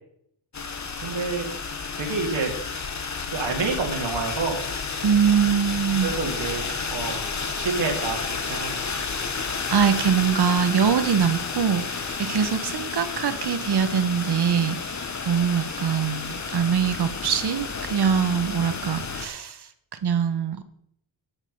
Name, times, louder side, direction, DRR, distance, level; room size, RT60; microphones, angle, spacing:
sound 1, 0.5-19.3, left 5 dB, 35° left, 1.1 m, -31 dB
voice 1, 1.0-1.5 2.0-2.5 3.3-4.6 6.0-9.0, right 4 dB, 75° right, 0 dB, 2.5 m, -29 dB
voice 2, 5.0-6.1 9.4-19.7 20.0-20.6, right 7 dB, 55° right, 10 dB, 1.2 m, -23 dB
11.0 x 7.4 x 5.4 m, 0.71 s
wide cardioid pair, 120°, 45 cm